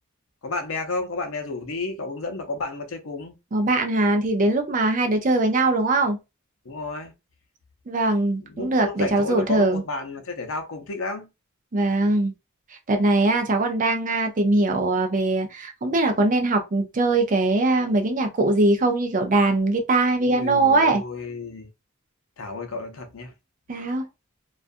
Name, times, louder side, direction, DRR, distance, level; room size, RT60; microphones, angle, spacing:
voice 1, 0.4-3.4 6.6-7.1 8.4-11.3 20.2-21.7 22.4-23.3, left 3 dB, 70° left, 0.6 m, -32 dB
voice 2, 3.5-6.2 7.9-9.8 11.7-12.3 12.9-21.0 23.7-24.1, right 2 dB, 40° right, 0.5 m, -21 dB
2.3 x 2.3 x 2.5 m
head